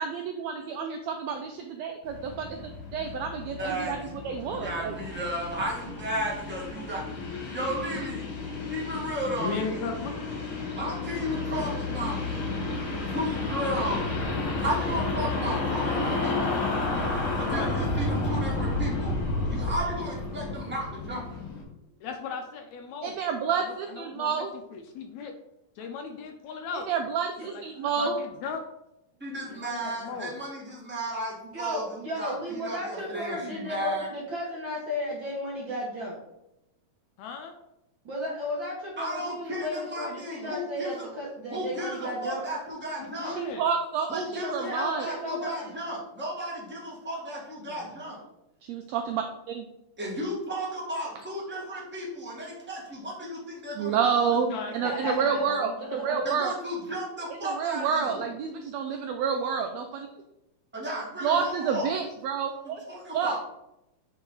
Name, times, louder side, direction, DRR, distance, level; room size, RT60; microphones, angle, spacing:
voice 1, 0.0-2.6 2.9-4.9 23.0-24.5 26.7-28.2 43.3-45.1 47.7-47.8 48.6-49.7 53.8-56.5 57.4-60.1 61.2-62.8 63.1-63.4, right 6 dB, 85° right, 4 dB, 1.5 m, -29 dB
sound 1, 2.0-21.6, left 3 dB, 50° left, 1.7 m, -31 dB
voice 2, 3.6-4.1 4.5-7.0 7.5-8.3 8.7-9.9 10.8-12.3 13.1-14.0 14.6-16.6 17.4-19.2 19.4-21.5 29.2-31.8 32.1-34.1 39.0-41.1 41.5-43.4 44.1-48.2 50.0-54.1 56.2-58.2 60.7-61.9 62.6-63.4, equal, 10° right, -5 dB, 0.7 m, -34 dB
voice 3, 9.4-10.1 17.5-17.8 22.0-23.2 23.5-25.3 25.8-26.9 27.4-28.6 29.5-30.3 37.2-37.5 43.0-43.7 54.4-55.7, left 5 dB, 80° left, 5 dB, 1.8 m, -37 dB
sound 2, 16.0-21.5, right 2 dB, 40° right, 2.4 m, -42 dB
voice 4, 31.5-36.2 38.0-42.4 44.4-45.7 54.8-55.5 55.8-56.2, left 1 dB, 60° right, -4 dB, 1.3 m, -34 dB
7.2 x 3.8 x 3.9 m, 0.88 s
omnidirectional pair, 3.5 m